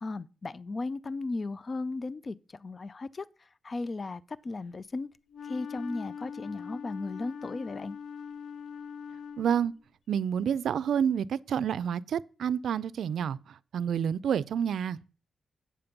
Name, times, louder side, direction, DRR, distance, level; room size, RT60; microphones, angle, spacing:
voice 1, 0.0-5.1 5.4-8.0, left 3 dB, 35° left, 0.3 m, -36 dB
Wind instrument woodwind instrument, 5.3-9.8, left 6 dB, 70° left, 0.6 m, -42 dB
voice 2, 9.4-9.7 10.1-13.4 13.7-15.0, right 8 dB, 85° right, 0.4 m, -28 dB
8.5 x 7.0 x 5.2 m
wide cardioid pair, 110°, 0 cm